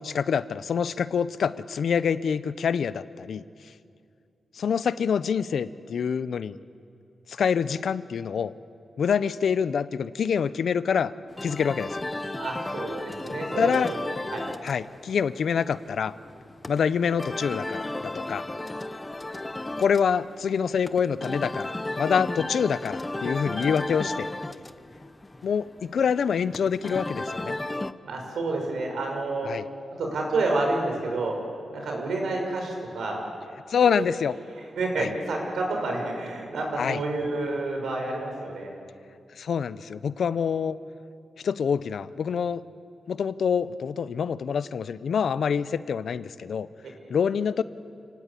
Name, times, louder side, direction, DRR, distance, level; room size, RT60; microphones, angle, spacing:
voice 1, 0.0-3.4 4.5-6.6 7.3-8.5 9.0-11.1 11.4-12.0 13.6-13.9 14.6-16.1 16.7-18.4 19.8-24.3 25.4-27.5 29.4-29.6 33.7-34.3 35.0-35.1 36.8-37.0 39.4-40.8 41.4-42.6 43.1-46.7 47.1-47.6, left 7 dB, 70° left, 15 dB, 0.7 m, -26 dB
sound 1, 11.3-27.9, left 2 dB, 15° left, 0.7 m, -34 dB
voice 2, 12.4-14.0 14.3-14.5 28.0-29.5 30.0-31.4 31.7-33.2 33.8-34.0 34.8-38.7 46.8-46.9, right 2 dB, 90° right, 1 dB, 5.9 m, -29 dB
29.5 x 18.5 x 8.5 m, 2.4 s
wide cardioid pair, 135°, 0 cm